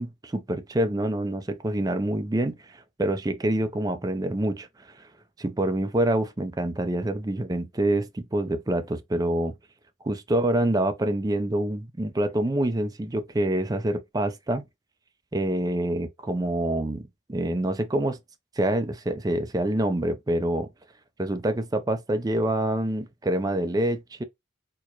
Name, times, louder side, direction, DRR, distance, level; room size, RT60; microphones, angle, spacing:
voice 1, 0.0-5.1 5.4-9.5 10.0-14.7 15.3-18.2 18.6-20.7 21.2-24.2, right 1 dB, 20° right, 0.4 m, -26 dB
4.5 x 2.1 x 2.8 m
head